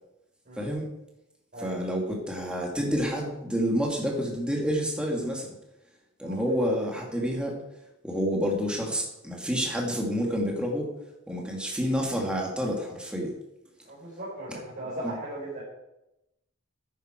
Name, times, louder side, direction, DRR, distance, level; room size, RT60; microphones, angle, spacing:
voice 1, 0.6-0.9 1.6-5.5 6.2-7.6 8.0-10.9 11.3-13.3 15.0-15.2, equal, 5° right, -1 dB, 2.3 m, -28 dB
voice 2, 6.2-6.8 13.9-15.6, right 1 dB, 45° right, -7 dB, 4.0 m, -38 dB
11.0 x 9.6 x 4.5 m, 0.90 s
head